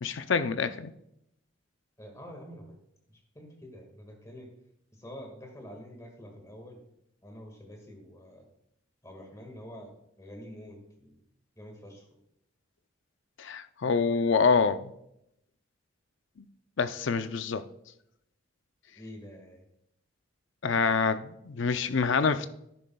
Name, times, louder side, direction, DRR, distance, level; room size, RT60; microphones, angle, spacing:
voice 1, 0.0-0.9 13.4-14.9 16.4-16.5 16.8-17.6 20.6-22.5, left 5 dB, 65° left, 11 dB, 0.5 m, -26 dB
voice 2, 2.0-2.7 3.1-4.5 5.0-6.8 7.2-8.4 9.0-9.9 10.2-11.2 11.6-12.0 13.8-13.9 19.0-19.6, equal, 15° left, 2 dB, 1.8 m, -47 dB
11.5 x 10.0 x 2.3 m, 0.78 s
head